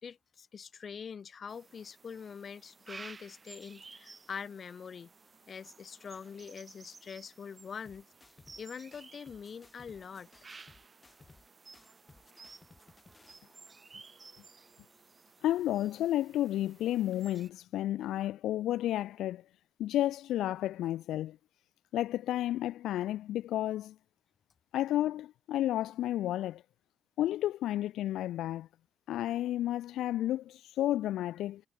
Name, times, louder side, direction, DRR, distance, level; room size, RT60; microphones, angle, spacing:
voice 1, 0.0-5.1 5.5-8.1 8.6-10.3, left 6 dB, 40° left, 1.4 m, -44 dB
sound 1, 1.5-17.5, right 4 dB, 25° right, 1.9 m, -55 dB
sound 2, 7.8-8.6 8.9-11.5 11.7-13.4, left 3 dB, 20° left, 4.5 m, -60 dB
voice 2, 15.4-19.4 19.8-21.4 21.9-24.0 24.7-26.6 27.2-28.7 29.1-31.6, left 13 dB, 85° left, 0.3 m, -31 dB
cardioid pair, 130°, 0 cm